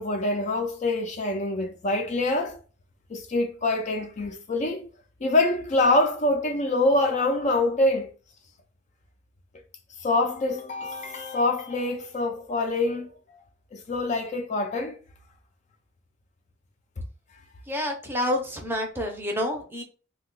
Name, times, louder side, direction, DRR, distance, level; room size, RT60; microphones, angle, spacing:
voice 1, 0.0-2.6 3.1-4.8 5.2-8.1 10.0-13.1 13.7-15.0, left 2 dB, 35° left, 0.4 m, -25 dB
voice 2, 17.7-19.8, left 1 dB, 10° right, 0.6 m, -28 dB
2.8 x 2.2 x 3.8 m
head